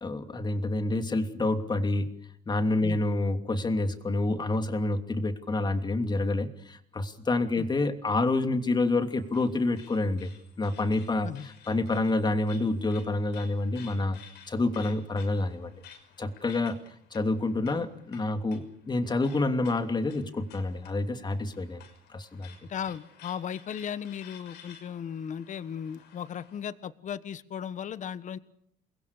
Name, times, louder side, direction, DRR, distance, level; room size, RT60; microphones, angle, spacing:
voice 1, 0.0-2.1 2.5-10.3 10.6-14.2 14.5-15.7 16.2-16.8 17.1-21.8 22.1-22.5, left 2 dB, 25° left, 8 dB, 2.9 m, -28 dB
sound 1, 8.5-26.7, left 8 dB, 80° left, 6.1 m, -55 dB
voice 2, 22.7-28.4, left 8 dB, 45° left, 15 dB, 1.4 m, -36 dB
29.0 x 22.0 x 6.8 m, 0.70 s
cardioid pair, 110°, 17 cm